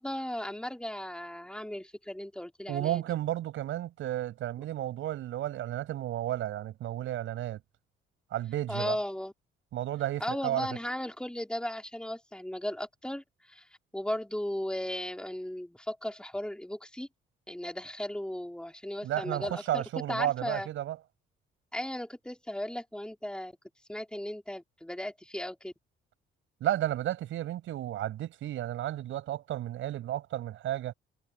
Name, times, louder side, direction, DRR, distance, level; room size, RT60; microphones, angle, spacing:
voice 1, 0.0-3.0 8.7-9.3 10.2-17.1 17.5-19.8 20.1-20.7 21.7-23.5 23.9-25.7, left 1 dB, 5° left, 4.4 m, -36 dB
voice 2, 2.7-7.6 8.3-9.0 9.7-10.7 19.0-21.0 26.6-30.9, right 13 dB, 80° right, 6.9 m, -32 dB
cardioid pair, 90°, 20 cm